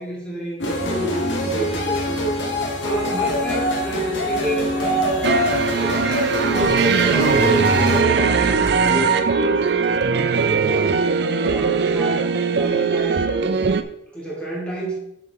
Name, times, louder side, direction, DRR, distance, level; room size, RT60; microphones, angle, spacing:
voice 1, 0.0-2.3 2.8-5.3 5.8-11.0 11.4-13.6 14.1-15.0, right 1 dB, 5° left, -7 dB, 3.2 m, -29 dB
sound 1, 0.6-8.0, left 1 dB, 80° left, 1.3 m, -23 dB
sound 2, 5.2-13.8, right 5 dB, 60° right, 0.5 m, -20 dB
7.4 x 7.4 x 3.7 m, 0.77 s
head